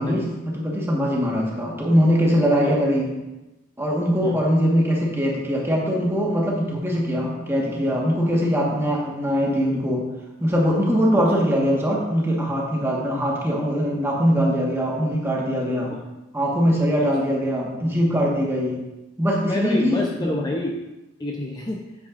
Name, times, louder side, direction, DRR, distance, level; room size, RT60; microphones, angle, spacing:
voice 1, 0.0-3.2 3.8-10.1 10.4-15.9 16.3-18.8 19.2-20.3, equal, 15° right, -3 dB, 1.5 m, -22 dB
voice 2, 19.4-20.7 21.2-21.8, left 1 dB, 20° left, 0 dB, 0.6 m, -28 dB
8.9 x 8.1 x 2.5 m, 1.0 s
head